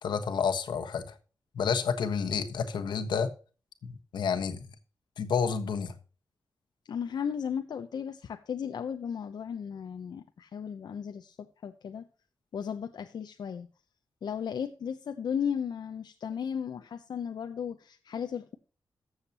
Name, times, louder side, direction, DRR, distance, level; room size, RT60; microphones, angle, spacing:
voice 1, 0.0-1.1 1.5-3.3 3.8-4.7 5.2-5.9, left 6 dB, 90° left, 1.3 m, -30 dB
voice 2, 6.9-12.0 12.5-13.7 14.2-18.6, left 7 dB, 70° left, 0.7 m, -35 dB
14.0 x 7.3 x 2.9 m
wide cardioid pair, 110°, 7 cm